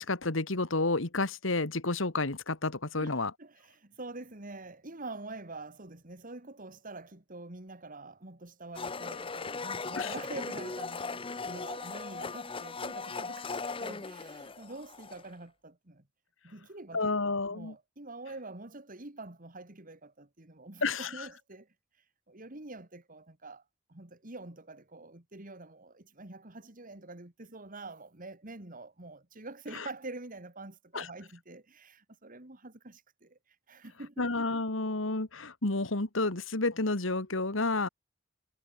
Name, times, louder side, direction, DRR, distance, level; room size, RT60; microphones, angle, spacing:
voice 1, 0.0-3.3 10.0-10.1 16.9-17.7 20.8-21.3 29.7-29.9 30.9-31.1 34.2-37.9, left 3 dB, 70° left, 2.0 m, -30 dB
voice 2, 3.0-16.0 16.4-21.7 22.3-23.6 23.9-33.4 33.7-34.3, right 2 dB, 45° right, 2.5 m, -46 dB
Domestic sounds home sounds, 8.7-15.3, left 4 dB, 25° left, 0.9 m, -38 dB
head